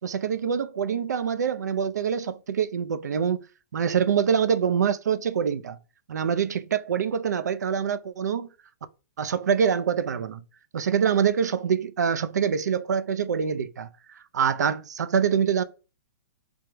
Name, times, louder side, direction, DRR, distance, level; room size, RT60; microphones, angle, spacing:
voice 1, 0.0-3.5 3.7-5.8 6.1-8.5 9.2-10.4 10.7-15.6, right 7 dB, 85° right, 0.5 m, -25 dB
3.5 x 3.4 x 3.0 m
hypercardioid pair, 180°, 9 cm